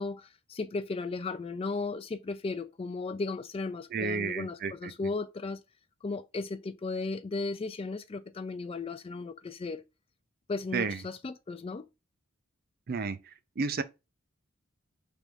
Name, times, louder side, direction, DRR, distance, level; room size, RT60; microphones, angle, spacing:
voice 1, 0.0-5.6 6.0-9.8 10.5-11.9, left 3 dB, 25° left, 0.3 m, -35 dB
voice 2, 3.9-4.9 10.7-11.0 12.9-13.2 13.6-13.8, right 4 dB, 45° right, 0.4 m, -31 dB
3.4 x 2.6 x 4.5 m
head